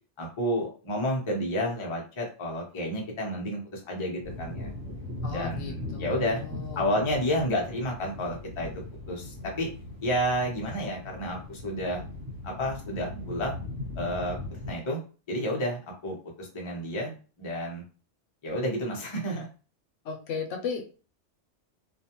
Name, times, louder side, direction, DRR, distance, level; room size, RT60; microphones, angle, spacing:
voice 1, 0.2-4.7 5.3-6.4 6.8-8.7 9.1-9.7 10.0-12.0 12.4-13.5 14.0-15.0 15.3-17.8 18.4-19.5, equal, 30° left, -1 dB, 0.6 m, -30 dB
sound 1, 4.2-14.7, left 2 dB, 55° right, 1.2 m, -39 dB
voice 2, 5.2-6.9 20.0-20.9, left 5 dB, 80° left, 4 dB, 0.9 m, -36 dB
2.5 x 2.2 x 2.8 m, 0.36 s
omnidirectional pair, 1.3 m